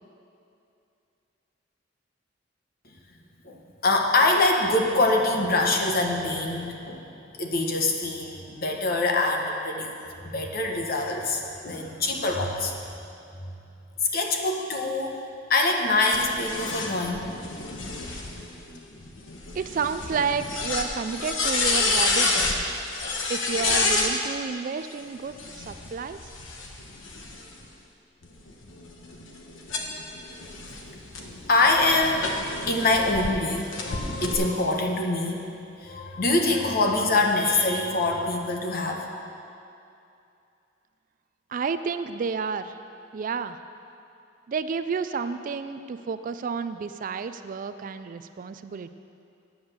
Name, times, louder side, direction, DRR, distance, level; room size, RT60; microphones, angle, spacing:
voice 1, 3.4-7.1 7.3-12.7 14.1-15.2 15.5-17.3 31.2-35.5 35.8-39.2, left 2 dB, 50° left, 2 dB, 1.1 m, -24 dB
sound 1, 16.1-24.1 25.3-27.6 28.2-33.3 33.7-34.3, left 3 dB, 75° left, 1.2 m, -29 dB
voice 2, 19.5-22.7 23.3-26.2 41.5-42.7 43.1-43.6 44.5-48.9, right 5 dB, 45° right, 11 dB, 0.3 m, -31 dB
9.5 x 7.9 x 6.6 m, 2.7 s
head